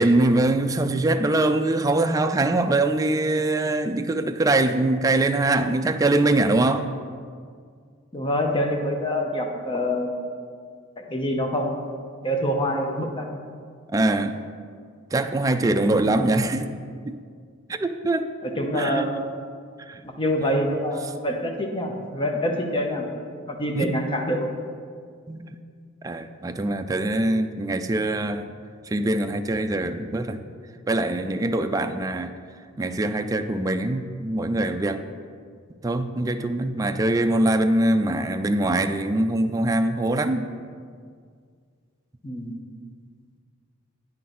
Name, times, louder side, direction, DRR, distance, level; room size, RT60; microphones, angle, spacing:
voice 1, 0.0-6.9 13.9-14.4 15.1-16.8 17.0-17.2 17.7-18.3 18.7-19.2 19.9-20.0 20.4-20.5 23.8-24.1 25.3-25.6 26.0-28.5 28.8-30.4 30.9-32.3 32.8-35.0 35.8-40.5, right 2 dB, 15° right, 7 dB, 0.3 m, -23 dB
voice 2, 8.1-10.3 11.0-11.9 12.2-13.3 18.4-19.3 20.0-23.1 23.5-24.5 42.2-42.6, equal, 25° left, 2 dB, 0.8 m, -26 dB
9.1 x 3.9 x 5.9 m, 2.1 s
head